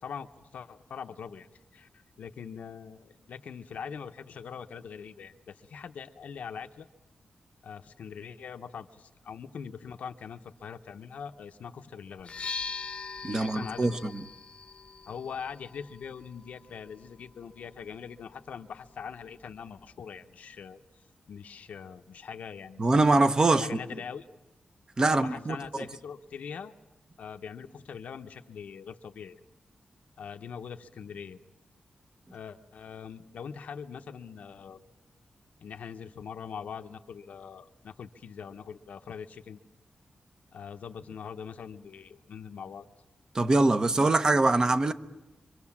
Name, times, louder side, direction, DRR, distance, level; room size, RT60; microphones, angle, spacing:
voice 1, 0.0-6.9 7.6-12.3 13.2-14.1 15.1-20.8 21.3-22.9 23.5-24.3 25.1-26.7 27.2-29.4 30.2-31.4 32.3-34.8 35.6-39.6 40.5-42.9, left 7 dB, 90° left, 0.9 m, -42 dB
sound 1, 12.2-19.9, left 4 dB, 50° left, 0.8 m, -43 dB
voice 2, 13.2-14.2 22.8-23.7 25.0-25.6 43.3-44.9, right 2 dB, 30° right, 0.9 m, -23 dB
25.5 x 23.5 x 7.3 m
wide cardioid pair, 135°, 2 cm